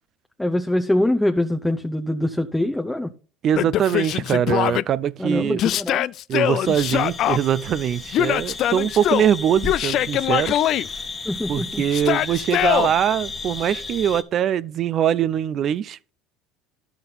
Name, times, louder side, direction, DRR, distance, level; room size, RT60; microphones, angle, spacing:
voice 1, 0.4-3.1 5.2-6.1 11.2-11.9, left 1 dB, 5° left, 0.7 m, -23 dB
voice 2, 3.4-5.6 6.3-10.5 11.5-16.0, right 9 dB, 45° right, 0.4 m, -22 dB
Yell, 3.5-4.8 5.6-7.4 8.1-9.3 9.6-10.9 11.9-12.9, left 12 dB, 55° left, 0.3 m, -22 dB
sound 1, 6.6-14.2, left 4 dB, 25° left, 1.3 m, -34 dB
11.0 x 5.8 x 4.0 m
supercardioid pair, 105°, 0 cm